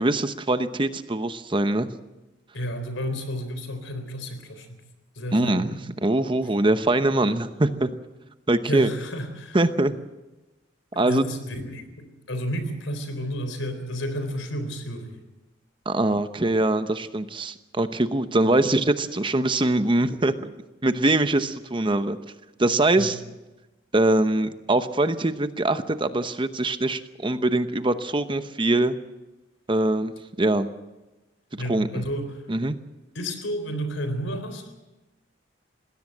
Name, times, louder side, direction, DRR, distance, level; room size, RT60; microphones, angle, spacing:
voice 1, 0.0-1.9 5.3-7.9 8.5-8.9 9.5-10.0 11.0-11.2 15.9-20.5 20.8-22.2 22.6-23.2 23.9-29.0 29.7-30.7 31.7-31.9 32.5-32.8, right 2 dB, 25° right, 11 dB, 0.8 m, -23 dB
voice 2, 2.5-4.8 5.2-5.8 8.7-9.6 11.0-15.2 23.0-23.1 31.6-32.4 33.1-34.6, equal, 85° left, 9 dB, 3.9 m, -31 dB
20.5 x 17.0 x 7.8 m, 1.1 s
head